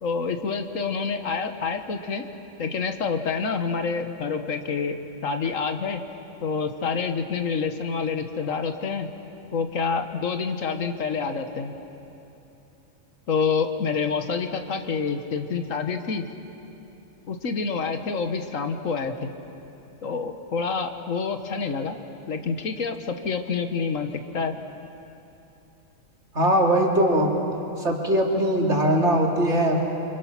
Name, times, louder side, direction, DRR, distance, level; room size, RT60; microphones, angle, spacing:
voice 1, 0.0-2.2 2.6-6.0 6.4-9.1 9.5-11.7 13.3-16.2 17.3-19.3 20.0-22.0 22.3-24.5, left 5 dB, 70° left, 7 dB, 1.6 m, -27 dB
voice 2, 26.3-27.3 27.8-29.8, right 1 dB, 55° right, -1 dB, 3.0 m, -21 dB
29.5 x 25.0 x 5.9 m, 2.9 s
omnidirectional pair, 1.4 m